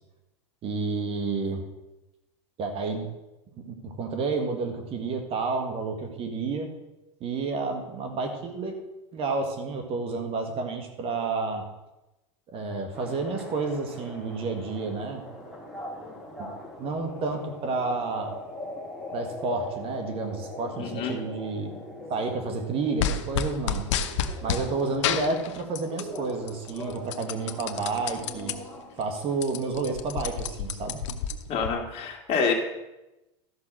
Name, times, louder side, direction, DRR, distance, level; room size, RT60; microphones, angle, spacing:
voice 1, 0.6-1.6 2.6-3.1 3.7-6.7 7.2-8.8 9.1-11.6 12.5-15.2 16.4-16.5 16.8-18.3 19.1-21.8 22.1-23.8 24.4-28.5 28.9-31.0, right 4 dB, 40° right, 5 dB, 1.9 m, -30 dB
sound 1, 12.9-28.8, left 1 dB, 5° right, 3.5 m, -41 dB
voice 2, 20.8-21.1 31.5-32.5, left 5 dB, 40° left, 2 dB, 2.4 m, -27 dB
sound 2, 23.0-24.7 25.0-26.2 26.5-28.5 29.0-29.1 29.3-31.7, left 8 dB, 75° left, 0.9 m, -29 dB
13.0 x 6.0 x 6.2 m, 0.97 s
supercardioid pair, 120°, 16 cm